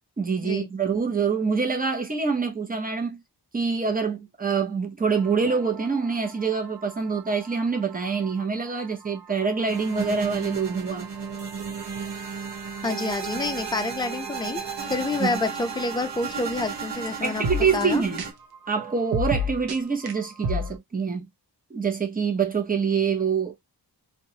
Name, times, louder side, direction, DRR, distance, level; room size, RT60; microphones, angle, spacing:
voice 1, 0.2-3.2 3.5-11.1 15.2-15.4 17.2-18.2 18.7-21.2 21.7-23.5, right 5 dB, 20° right, 0.7 m, -25 dB
sound 1, 5.0-20.8, equal, 60° right, 0.7 m, -37 dB
sound 2, 9.7-18.3, right 6 dB, 80° right, 1.1 m, -34 dB
voice 2, 12.8-14.6 14.9-17.5 17.7-18.0, left 3 dB, 10° left, 0.4 m, -28 dB
2.9 x 2.2 x 2.8 m
wide cardioid pair, 145°, 41 cm